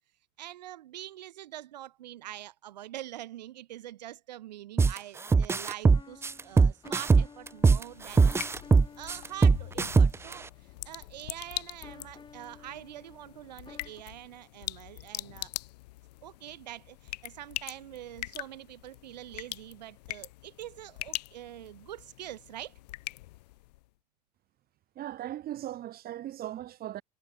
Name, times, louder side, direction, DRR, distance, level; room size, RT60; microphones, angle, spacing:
voice 1, 0.4-8.4 9.0-15.5 16.2-22.7, right 13 dB, 85° right, 4.7 m, -45 dB
sound 1, 4.8-5.0 5.3-7.8 8.2-10.3, right 4 dB, 10° right, 0.4 m, -20 dB
sound 2, 5.9-14.0, left 5 dB, 20° left, 6.2 m, -53 dB
sound 3, 7.4-23.9, left 19 dB, 75° left, 6.1 m, -43 dB
voice 2, 25.0-27.0, right 13 dB, 45° right, 5.7 m, -38 dB
hypercardioid pair, 90°, 21 cm